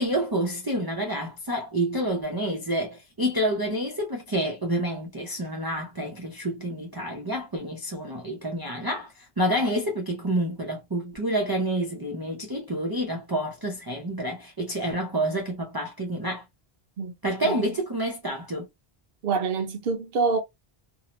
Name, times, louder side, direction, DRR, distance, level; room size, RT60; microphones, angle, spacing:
voice 1, 0.0-16.4 17.2-18.7, right 1 dB, 30° right, 0.4 m, -28 dB
voice 2, 19.2-20.4, right 4 dB, 65° right, 0.7 m, -26 dB
2.6 x 2.0 x 2.8 m
omnidirectional pair, 1.1 m